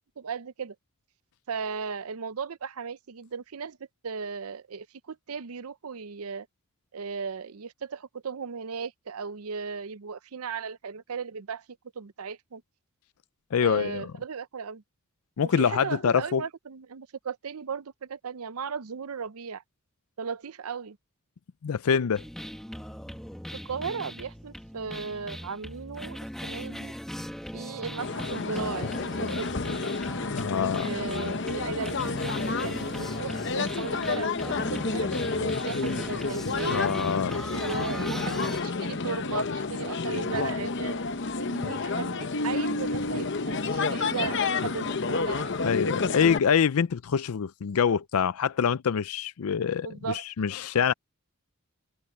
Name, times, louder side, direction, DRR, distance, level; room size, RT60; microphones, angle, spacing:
voice 1, 0.2-0.7 1.5-3.8 4.0-6.5 6.9-11.6 12.0-12.6 13.6-14.8 15.6-19.6 20.2-21.0 23.6-26.9 27.5-28.9 29.2-29.5 30.7-37.1 37.5-41.0 41.3-45.6 49.8-50.2, right 5 dB, 85° right, 0.6 m, -36 dB
voice 2, 13.5-14.0 15.4-16.4 21.6-22.2 30.3-30.9 36.7-37.4 44.6-44.7 45.6-50.9, left 7 dB, 85° left, 0.5 m, -25 dB
sound 1, 22.1-38.6, equal, ahead, 1.7 m, -39 dB
sound 2, 28.0-46.4, left 4 dB, 55° left, 0.8 m, -30 dB
head